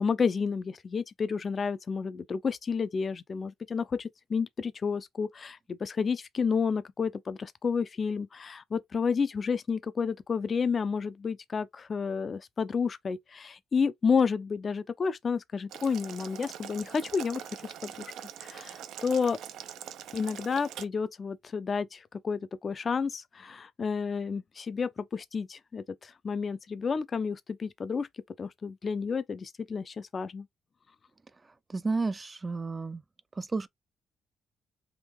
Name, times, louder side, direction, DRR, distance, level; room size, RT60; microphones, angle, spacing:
voice 1, 0.0-18.1 18.4-19.4 20.1-28.1 28.4-30.5, left 5 dB, 40° left, 0.5 m, -31 dB
Boiling, 15.7-20.8, right 10 dB, 80° right, 0.5 m, -43 dB
voice 2, 31.7-33.0 33.4-33.7, right 3 dB, 25° right, 0.4 m, -31 dB
3.7 x 2.6 x 3.0 m
cardioid pair, 90°, 0 cm